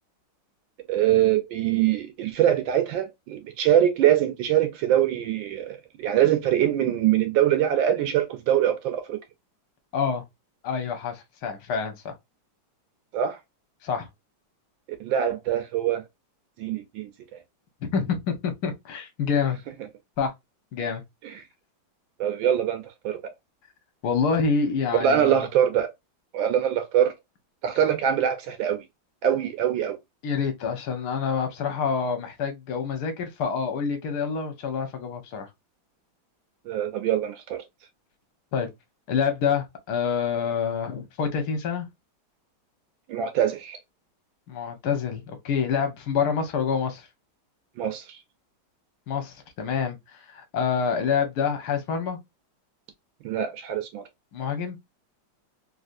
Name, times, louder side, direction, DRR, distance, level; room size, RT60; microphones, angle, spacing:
voice 1, 0.9-9.2 13.1-13.4 15.0-16.0 16.6-17.1 21.2-21.4 22.2-23.2 25.0-25.9 26.3-27.1 27.6-28.8 29.2-30.0 36.7-37.6 43.1-43.8 47.8-48.2 53.2-54.1, right 10 dB, 75° right, 1.3 m, -23 dB
voice 2, 9.9-10.2 10.6-12.1 13.8-14.1 17.8-19.6 20.2-20.3 20.7-21.0 24.0-25.5 30.2-35.5 38.5-38.7 39.1-41.9 44.5-47.1 49.1-52.2 54.3-54.8, left 6 dB, 60° left, 1.2 m, -27 dB
3.4 x 2.7 x 2.4 m
omnidirectional pair, 2.2 m